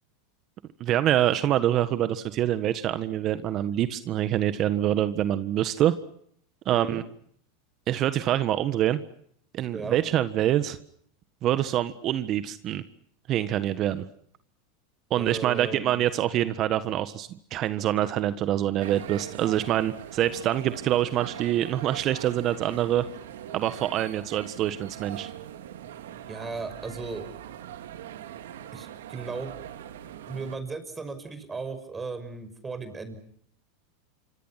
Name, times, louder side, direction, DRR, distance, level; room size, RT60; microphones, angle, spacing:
voice 1, 0.8-6.0 6.6-7.0 7.9-9.0 9.5-10.8 11.4-12.8 13.3-14.1 15.1-23.0 23.5-25.3, right 12 dB, 45° right, 12 dB, 1.5 m, -25 dB
voice 2, 6.7-7.0 9.7-10.0 15.2-16.0 26.3-27.3 28.7-29.5 30.3-33.2, right 4 dB, 15° right, 9 dB, 6.0 m, -36 dB
sound 1, 18.8-30.6, right 11 dB, 80° right, 2.4 m, -41 dB
27.0 x 25.5 x 5.9 m, 0.66 s
hypercardioid pair, 105°, 0 cm